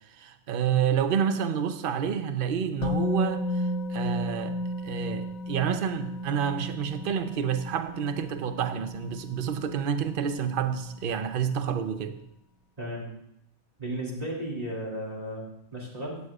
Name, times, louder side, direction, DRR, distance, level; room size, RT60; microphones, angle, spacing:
voice 1, 0.2-4.6 4.8-12.2, right 8 dB, 50° right, 9 dB, 0.7 m, -29 dB
Musical instrument, 2.8-10.7 11.0-11.2, left 1 dB, 70° left, 1.2 m, -33 dB
voice 2, 12.8-13.1 13.8-16.2, right 1 dB, 25° right, -5 dB, 2.6 m, -34 dB
14.0 x 9.4 x 2.4 m, 0.78 s
omnidirectional pair, 1.5 m